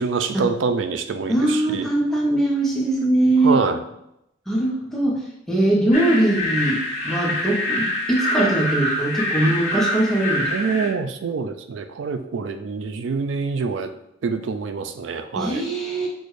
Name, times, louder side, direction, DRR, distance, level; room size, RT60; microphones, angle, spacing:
voice 1, 0.0-1.9 3.4-3.8 10.5-13.9 14.2-15.6, right 4 dB, 85° right, 8 dB, 0.4 m, -25 dB
voice 2, 1.3-3.6 4.5-10.8 15.3-16.1, right 1 dB, ahead, -4 dB, 0.9 m, -21 dB
sound 1, 5.9-10.9, left 1 dB, 35° left, 1.2 m, -25 dB
6.1 x 2.5 x 3.2 m, 0.80 s
head